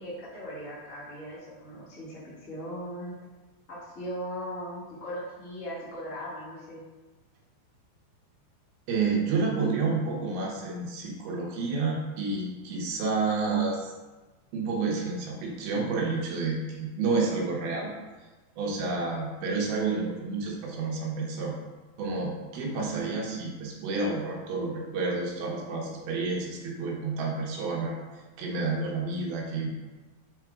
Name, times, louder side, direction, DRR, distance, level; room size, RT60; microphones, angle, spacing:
voice 1, 0.0-3.1 3.7-6.8, equal, 40° left, -10 dB, 1.1 m, -38 dB
voice 2, 8.9-13.9 14.5-17.9 18.6-21.5 22.0-28.0 28.4-29.7, right 4 dB, 70° right, -2 dB, 2.6 m, -30 dB
6.8 x 4.9 x 4.6 m, 1.2 s
omnidirectional pair, 5.2 m